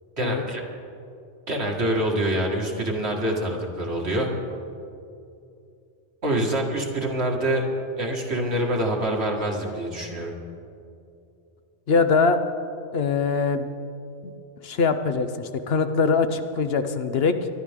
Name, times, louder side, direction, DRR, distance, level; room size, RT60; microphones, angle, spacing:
voice 1, 0.2-0.6 1.5-4.3 6.2-7.6 8.0-10.3, right 1 dB, 65° right, 0 dB, 2.2 m, -25 dB
voice 2, 11.9-12.4 12.9-13.7 14.2-14.3 14.6-17.5, left 4 dB, 60° left, 8 dB, 1.0 m, -22 dB
23.0 x 12.0 x 3.7 m, 2.6 s
omnidirectional pair, 1.2 m